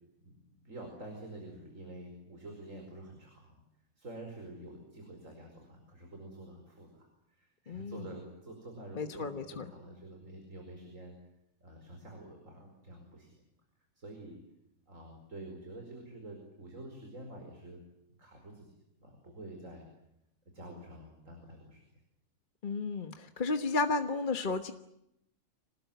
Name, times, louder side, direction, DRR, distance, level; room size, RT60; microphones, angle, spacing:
voice 1, 0.2-3.6 4.0-11.1 11.6-13.3 14.0-14.4 14.9-17.8 18.2-18.7 19.0-19.8 20.5-21.8, right 1 dB, 70° right, 2 dB, 5.4 m, -48 dB
voice 2, 7.7-8.0 9.0-9.6 22.6-24.7, left 3 dB, 40° left, 8 dB, 1.3 m, -33 dB
26.0 x 19.5 x 9.2 m, 0.83 s
omnidirectional pair, 1.4 m